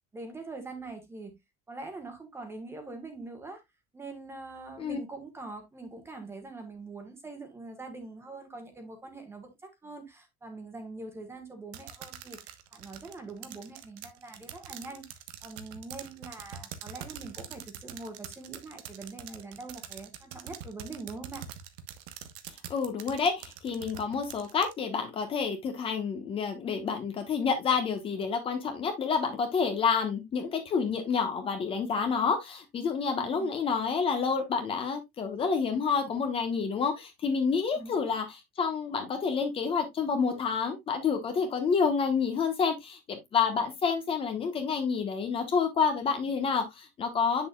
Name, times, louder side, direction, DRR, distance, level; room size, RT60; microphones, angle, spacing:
voice 1, 0.1-1.3 1.7-3.6 3.9-12.4 12.7-15.1 15.4-21.4 33.1-33.5 37.7-38.1, right 3 dB, 10° right, 1.6 m, -43 dB
sound 1, 11.7-24.7, right 10 dB, 90° right, 1.2 m, -44 dB
voice 2, 22.7-38.2 38.6-47.5, left 5 dB, 30° left, 1.3 m, -29 dB
7.9 x 6.8 x 2.3 m
cardioid pair, 165°, 20 cm